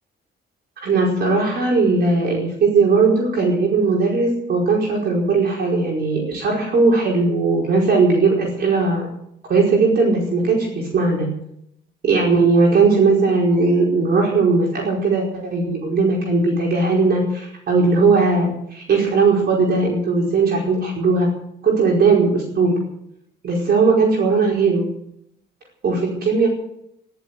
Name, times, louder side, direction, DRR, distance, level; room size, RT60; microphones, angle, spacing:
voice 1, 0.8-9.1 9.5-11.3 12.0-21.3 21.6-22.8 23.4-24.9 25.8-26.5, right 4 dB, 60° right, -2 dB, 4.9 m, -18 dB
14.5 x 12.0 x 8.3 m, 0.75 s
cardioid pair, 105°, 19 cm